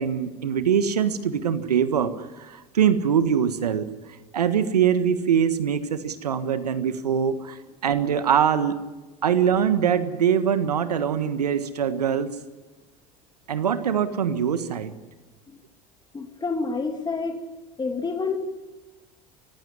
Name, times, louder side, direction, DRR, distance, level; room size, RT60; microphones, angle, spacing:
voice 1, 0.0-3.9 4.3-8.8 9.2-12.4 13.5-14.9, right 8 dB, 90° right, 12 dB, 1.6 m, -23 dB
voice 2, 16.1-17.4 17.8-18.4, left 4 dB, 20° left, 5 dB, 2.5 m, -28 dB
25.0 x 15.5 x 9.7 m, 1.2 s
hypercardioid pair, 75°, 20 cm